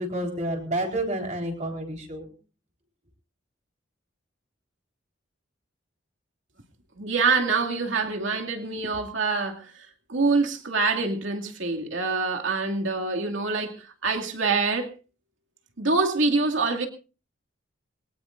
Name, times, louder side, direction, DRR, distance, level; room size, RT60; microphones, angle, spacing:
voice 1, 0.0-2.3, right 1 dB, 35° right, 1 dB, 4.2 m, -29 dB
voice 2, 7.0-9.7 10.1-14.9 15.8-16.9, right 4 dB, 75° right, 3 dB, 2.4 m, -25 dB
23.0 x 18.5 x 2.6 m, 0.35 s
head